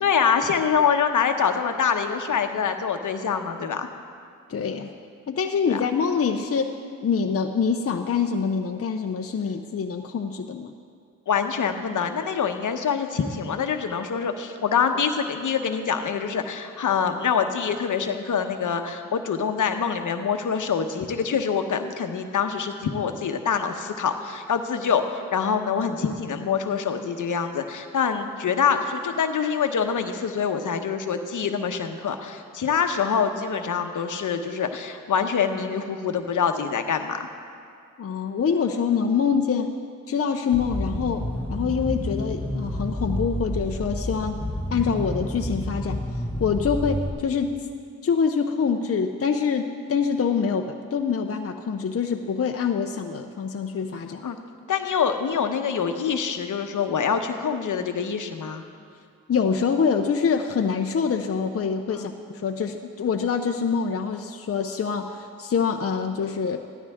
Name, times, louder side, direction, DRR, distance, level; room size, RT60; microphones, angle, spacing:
voice 1, 0.0-3.9 5.7-5.8 11.3-37.3 54.2-54.4 54.7-58.6 61.9-62.1, left 6 dB, 65° left, 6 dB, 1.0 m, -25 dB
voice 2, 4.5-4.9 5.3-6.7 7.0-10.7 38.0-39.7 40.1-44.4 44.7-46.0 46.4-47.6 48.0-54.2 59.3-66.6, left 6 dB, 45° left, 4 dB, 0.7 m, -25 dB
sound 1, 40.5-47.1, left 1 dB, 5° left, 1.2 m, -29 dB
16.0 x 12.5 x 3.6 m, 2.2 s
cardioid pair, 55°, 34 cm